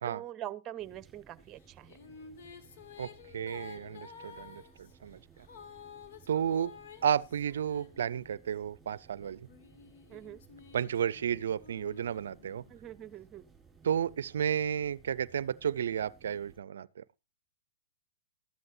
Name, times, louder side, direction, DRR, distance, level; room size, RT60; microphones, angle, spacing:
voice 1, 0.0-1.9 10.1-10.4 12.7-13.4, right 12 dB, 30° right, 0.9 m, -43 dB
sound 1, 0.8-16.6, right 6 dB, 15° right, 5.0 m, -60 dB
Female singing, 1.6-8.5 9.2-12.9, left 6 dB, 65° left, 2.4 m, -52 dB
voice 2, 3.0-5.5 6.3-6.7 7.0-9.5 10.7-12.6 13.8-17.0, right 8 dB, 75° right, 0.5 m, -32 dB
13.0 x 13.0 x 2.7 m
hypercardioid pair, 120°, 0 cm